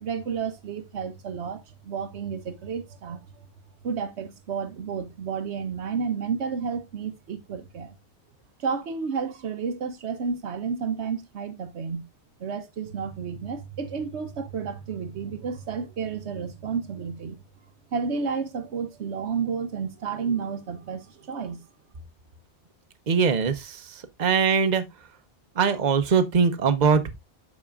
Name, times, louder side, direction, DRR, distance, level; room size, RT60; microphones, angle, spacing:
voice 1, 0.0-3.5 3.8-7.9 8.6-12.1 12.4-17.4 17.9-21.6, right 6 dB, 75° right, 1.1 m, -31 dB
voice 2, 23.1-23.8 24.2-24.8 25.6-27.2, right 6 dB, 45° right, 0.9 m, -21 dB
12.0 x 4.2 x 2.4 m
omnidirectional pair, 1.2 m